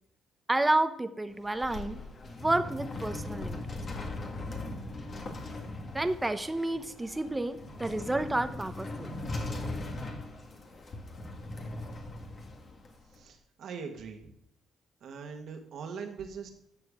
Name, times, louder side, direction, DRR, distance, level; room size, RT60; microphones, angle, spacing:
voice 1, 0.5-3.6 5.9-9.1, right 2 dB, 15° right, 10 dB, 0.9 m, -30 dB
sound 1, 1.3-13.2, left 2 dB, 45° left, 1.9 m, -39 dB
voice 2, 13.1-14.3 15.0-16.5, right 5 dB, 70° right, 5 dB, 1.7 m, -41 dB
12.0 x 6.9 x 3.7 m, 0.76 s
cardioid pair, 90°, 0 cm